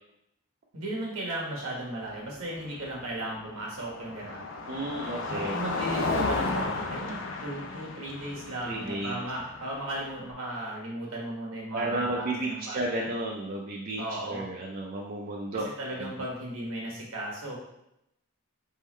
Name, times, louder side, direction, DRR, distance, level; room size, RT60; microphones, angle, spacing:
voice 1, 0.7-4.5 4.8-13.1 14.0-14.4 15.5-17.6, right 1 dB, 70° right, -3 dB, 1.5 m, -36 dB
Car passing by, 2.0-10.3, left 3 dB, 60° left, 0.5 m, -34 dB
voice 2, 4.7-5.5 8.6-9.2 11.7-15.7 16.0-16.1, right 2 dB, 40° right, -2 dB, 0.4 m, -32 dB
4.2 x 3.7 x 3.1 m, 0.83 s
head